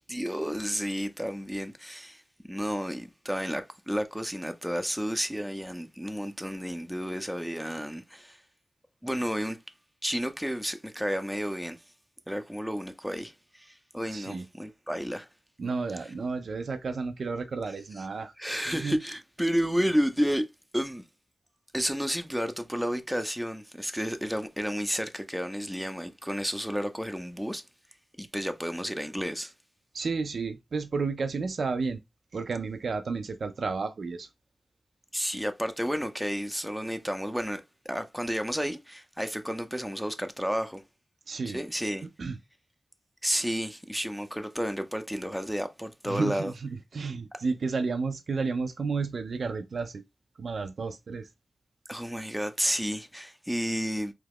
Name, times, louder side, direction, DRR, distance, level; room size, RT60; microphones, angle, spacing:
voice 1, 0.1-2.2 2.5-8.4 9.0-9.6 10.0-11.8 12.3-15.3 18.4-20.5 20.7-21.0 21.7-27.6 28.2-29.5 35.1-40.8 41.5-42.1 43.2-46.5 51.9-54.1, equal, ahead, 0.4 m, -31 dB
voice 2, 14.1-14.5 15.6-18.3 18.7-19.0 29.9-32.0 32.3-34.3 41.3-41.6 42.2-42.4 46.1-50.0 50.4-51.3, right 4 dB, 75° right, 0.3 m, -32 dB
2.9 x 2.3 x 3.4 m
cardioid pair, 60°, 0 cm